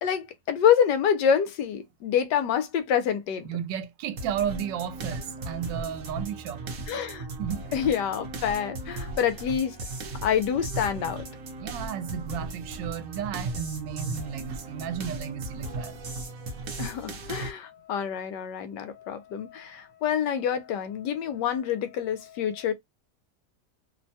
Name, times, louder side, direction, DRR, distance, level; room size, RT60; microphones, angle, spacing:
voice 1, 0.0-3.5 6.9-7.3 7.7-9.8 10.2-11.3 16.8-22.7, left 8 dB, 75° left, 1.2 m, -27 dB
voice 2, 3.4-6.6 7.4-7.6 11.6-15.9, right 9 dB, 85° right, 1.3 m, -33 dB
sound 1, 4.2-17.5, right 2 dB, 60° right, 1.0 m, -37 dB
3.2 x 2.2 x 2.6 m
omnidirectional pair, 1.9 m